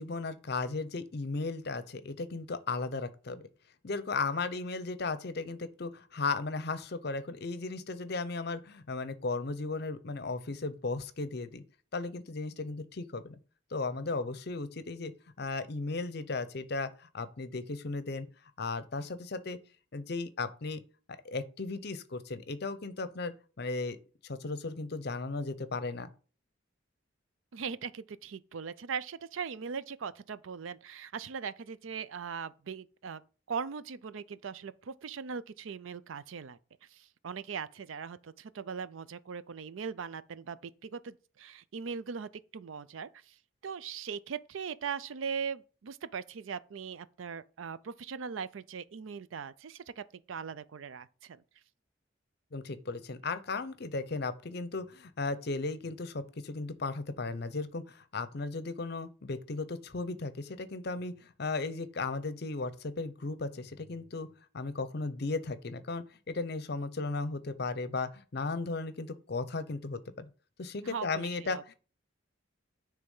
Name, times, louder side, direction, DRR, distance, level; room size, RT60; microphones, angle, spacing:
voice 1, 0.0-3.5 3.8-11.6 11.9-13.4 13.7-15.1 15.4-18.3 18.6-19.6 19.9-20.8 21.2-24.0 24.2-26.1 52.5-64.3 64.5-70.3 70.6-71.7, left 3 dB, 55° left, 0.7 m, -36 dB
voice 2, 27.5-33.2 33.5-36.6 36.9-43.4 43.6-51.4 70.8-71.6, right 6 dB, 85° right, 0.5 m, -40 dB
9.6 x 3.4 x 5.4 m
head